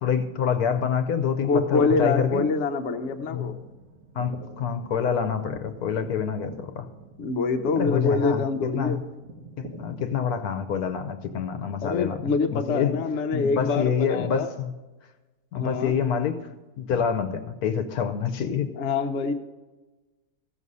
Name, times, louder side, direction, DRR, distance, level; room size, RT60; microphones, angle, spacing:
voice 1, 0.0-2.4 3.3-3.6 4.2-6.9 7.7-9.0 9.6-13.0 13.3-14.7 15.5-16.5 16.8-18.7, left 7 dB, 75° left, 8 dB, 1.2 m, -27 dB
voice 2, 1.4-3.5 7.2-9.0 11.8-14.5 15.6-16.0 18.8-19.3, left 4 dB, 50° left, 5 dB, 1.0 m, -25 dB
sound 1, 2.9-11.6, right 3 dB, 55° right, 1.5 m, -46 dB
15.0 x 6.3 x 5.4 m, 1.2 s
omnidirectional pair, 1.7 m